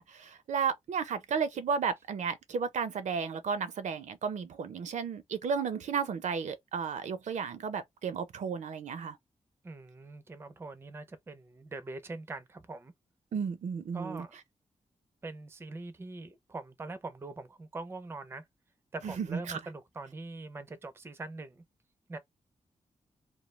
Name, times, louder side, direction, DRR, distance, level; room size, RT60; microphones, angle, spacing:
voice 1, 0.0-9.2 13.3-14.3 19.0-19.6, right 6 dB, 75° right, 0.5 m, -33 dB
voice 2, 9.6-12.9 13.9-14.4 15.2-18.5 18.9-21.6 22.1-22.2, right 3 dB, 20° right, 0.4 m, -43 dB
2.2 x 2.0 x 3.0 m
wide cardioid pair, 165°, 12 cm